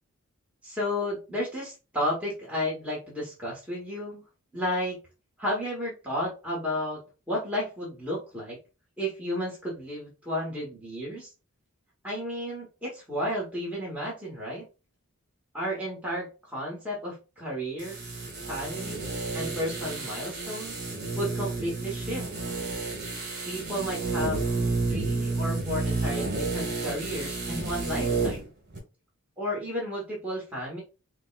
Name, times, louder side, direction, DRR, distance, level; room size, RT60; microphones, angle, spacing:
voice 1, 0.6-4.2 4.5-5.0 5.4-7.0 7.3-8.6 9.0-11.3 12.0-14.7 15.5-18.0 18.5-20.7 21.2-22.3 23.4-24.5 24.9-28.5 29.4-30.8, equal, 5° right, -5 dB, 1.2 m, -32 dB
sound 1, 17.8-28.5 28.7-28.8, right 3 dB, 50° right, 1.5 m, -31 dB
5.1 x 2.2 x 2.4 m, 0.31 s
head